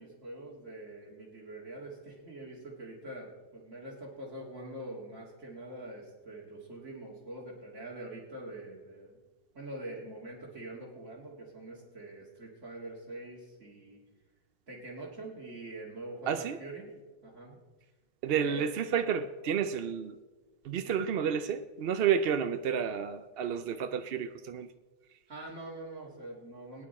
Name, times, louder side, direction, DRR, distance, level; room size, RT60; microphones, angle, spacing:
voice 1, 0.0-9.2 9.5-14.0 14.7-16.9 17.2-17.6 18.4-18.7 21.0-21.1 25.3-26.8, right 1 dB, 80° right, -5 dB, 2.5 m, -44 dB
voice 2, 16.3-16.6 18.2-20.2 20.6-24.7, right 7 dB, 60° right, 9 dB, 0.8 m, -30 dB
21.0 x 9.9 x 4.2 m, 1.3 s
omnidirectional pair, 1.2 m